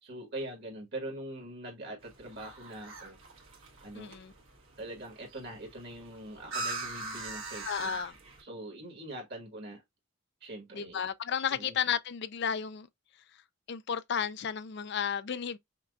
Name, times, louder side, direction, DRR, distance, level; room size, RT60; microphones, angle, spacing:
voice 1, 0.0-3.2 3.8-4.2 4.8-8.0 8.4-9.8 10.4-11.0 11.5-11.8, right 1 dB, 50° right, 1.5 m, -43 dB
sound 1, 2.0-8.4, right 2 dB, 65° right, 1.5 m, -42 dB
voice 2, 3.9-4.3 7.7-8.1 10.7-12.9 13.7-15.6, left 7 dB, 50° left, 0.4 m, -33 dB
5.8 x 2.3 x 2.3 m
head